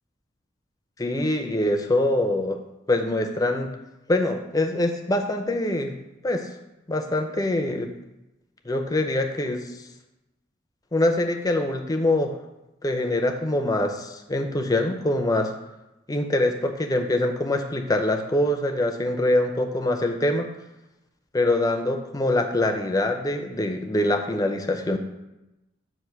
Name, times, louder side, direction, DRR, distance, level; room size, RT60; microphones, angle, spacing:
voice 1, 1.0-2.6 2.9-3.7 4.1-5.9 6.2-6.5 6.9-7.9 8.6-9.8 10.9-12.4 12.8-15.5 16.1-20.5 21.3-25.0, left 1 dB, 20° left, 4 dB, 0.5 m, -24 dB
7.8 x 2.6 x 5.7 m, 0.97 s
head